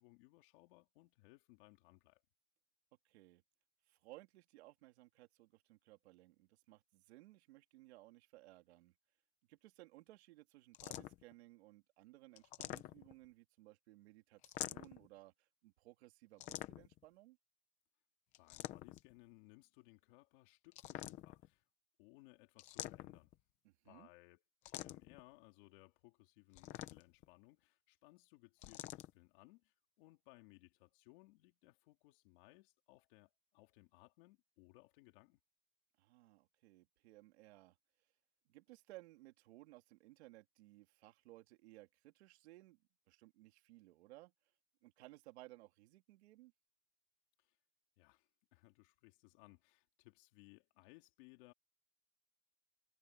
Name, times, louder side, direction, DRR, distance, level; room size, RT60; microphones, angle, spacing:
voice 1, 0.0-2.2 18.4-21.6 22.0-23.3 23.8-24.4 24.7-35.4 47.4-47.6 48.0-51.5, left 22 dB, 40° left, 3.3 m, -64 dB
voice 2, 3.0-3.4 3.9-8.9 9.5-17.4 23.6-24.1 36.0-37.8 38.4-42.8 43.1-44.3 44.8-46.5, right 19 dB, 50° right, 3.0 m, -60 dB
sound 1, 10.7-11.3 12.4-13.3 14.4-15.1 16.4-17.0 18.3-19.1 20.7-21.5 22.6-23.4 24.7-25.2 26.5-27.3 28.6-29.1, left 15 dB, 15° left, 0.7 m, -47 dB
supercardioid pair, 175°, 42 cm